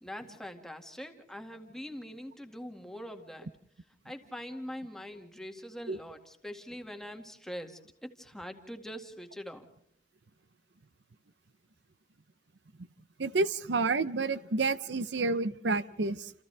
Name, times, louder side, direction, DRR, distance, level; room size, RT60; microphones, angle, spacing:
voice 1, 0.0-3.5 4.0-9.7, equal, 5° left, 4 dB, 2.1 m, -43 dB
voice 2, 13.2-16.3, right 3 dB, 70° right, 15 dB, 0.8 m, -29 dB
29.5 x 28.0 x 3.4 m, 0.67 s
head